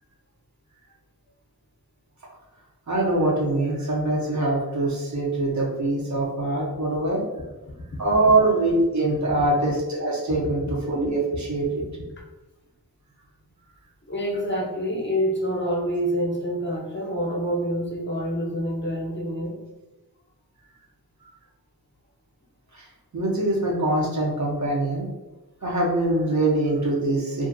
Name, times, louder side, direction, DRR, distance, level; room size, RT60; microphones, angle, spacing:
voice 1, 2.9-7.2 8.0-11.8 22.7-22.9 23.1-25.1 25.6-27.5, right 2 dB, 50° right, -4 dB, 0.8 m, -23 dB
voice 2, 14.1-19.6, equal, 30° left, -3 dB, 0.6 m, -27 dB
2.6 x 2.4 x 2.5 m, 1.1 s
wide cardioid pair, 75°, 37 cm